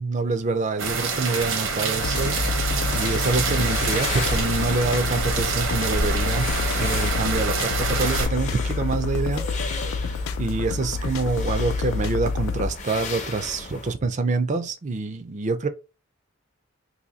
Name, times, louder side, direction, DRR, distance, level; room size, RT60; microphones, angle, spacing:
voice 1, 0.1-2.4 2.9-6.5 6.8-9.5 10.4-15.7, right 3 dB, 35° right, 0.4 m, -26 dB
sound 1, 0.8-8.3, right 4 dB, 75° right, 0.8 m, -26 dB
sound 2, 2.0-12.7, left 4 dB, 85° left, 0.4 m, -28 dB
sound 3, 2.8-13.9, left 4 dB, 35° left, 0.6 m, -36 dB
2.8 x 2.7 x 3.9 m
head